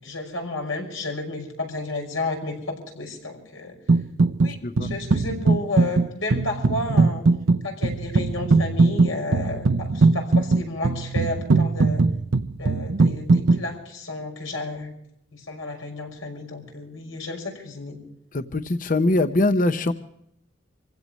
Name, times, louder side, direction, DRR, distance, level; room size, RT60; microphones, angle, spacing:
voice 1, 0.0-3.8 4.4-7.2 7.6-12.0 12.6-14.9 15.3-18.0, left 2 dB, 85° left, 2 dB, 5.9 m, -32 dB
sound 1, 3.9-4.5 4.8-13.6, right 3 dB, 70° right, 0.7 m, -20 dB
voice 2, 18.3-19.9, left 2 dB, 40° left, 10 dB, 0.7 m, -22 dB
26.5 x 16.5 x 3.1 m, 0.72 s
head